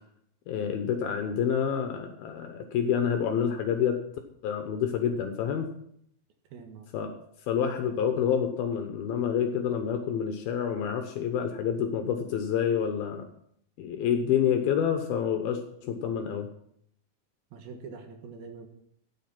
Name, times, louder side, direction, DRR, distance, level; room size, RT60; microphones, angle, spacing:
voice 1, 0.5-4.0 4.4-5.7 6.9-7.1 7.5-13.2 13.8-16.5, left 8 dB, 75° left, 5 dB, 2.8 m, -28 dB
voice 2, 6.5-6.9 17.5-18.7, right 5 dB, 75° right, 5 dB, 3.2 m, -44 dB
12.5 x 9.5 x 6.0 m, 0.69 s
omnidirectional pair, 4.6 m